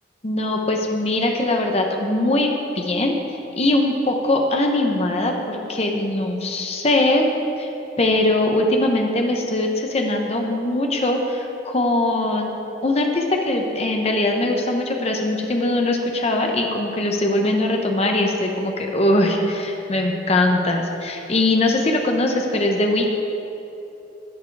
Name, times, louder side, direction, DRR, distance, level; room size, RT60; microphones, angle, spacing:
voice 1, 0.2-3.1 3.6-7.2 7.6-7.7 8.0-12.5 12.8-23.1, left 1 dB, 35° left, 2 dB, 0.8 m, -21 dB
11.5 x 9.4 x 4.7 m, 2.9 s
head